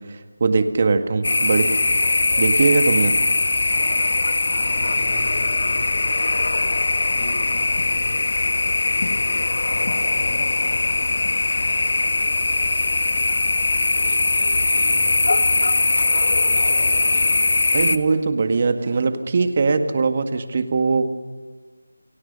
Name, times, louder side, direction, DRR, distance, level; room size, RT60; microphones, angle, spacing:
voice 1, 0.0-1.7 2.4-3.2 17.7-21.1, right 4 dB, 35° right, 8 dB, 1.8 m, -20 dB
sound 1, 1.2-18.0, left 3 dB, 55° left, 1.2 m, -20 dB
voice 2, 1.5-1.9 3.7-3.9 4.5-6.3 7.1-13.2 13.8-15.8 16.1-17.4, left 1 dB, 15° left, -5 dB, 7.1 m, -40 dB
28.5 x 23.0 x 5.5 m, 1.3 s
figure-of-eight pair, 170°, 0 cm